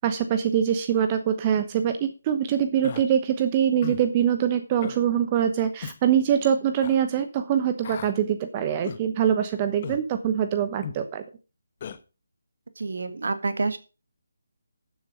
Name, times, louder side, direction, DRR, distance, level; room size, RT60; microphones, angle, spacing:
voice 1, 0.0-11.2, right 9 dB, 25° right, 9 dB, 0.9 m, -24 dB
Human voice, 2.8-3.0 3.8-4.1 4.8-5.0 5.8-6.0 6.8-7.0 7.8-8.1 8.8-9.0 9.8-10.0 10.8-11.0 11.8-12.0, left 7 dB, 35° left, 1.0 m, -36 dB
voice 2, 12.8-13.8, right 3 dB, 65° right, 10 dB, 1.7 m, -28 dB
12.5 x 7.6 x 5.2 m, 0.33 s
figure-of-eight pair, 150°, 0 cm